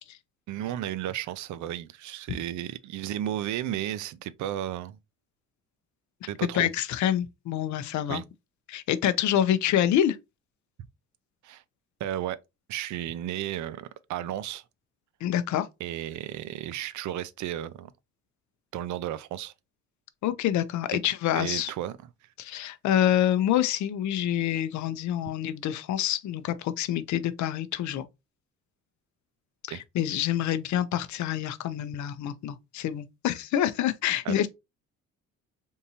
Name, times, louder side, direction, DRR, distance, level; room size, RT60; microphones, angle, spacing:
voice 1, 0.5-5.0 6.3-6.7 8.1-8.2 11.4-11.6 12.0-12.4 12.7-14.6 15.8-17.9 18.7-19.5 20.9-21.0 21.4-22.0 29.7-29.8 34.2-34.5, right 12 dB, 75° right, 0.5 m, -33 dB
voice 2, 6.5-8.2 8.7-10.2 15.2-15.7 20.2-21.7 22.4-28.0 29.7-34.5, left 11 dB, 70° left, 0.5 m, -27 dB
3.6 x 2.7 x 2.8 m
cardioid pair, 90°, 30 cm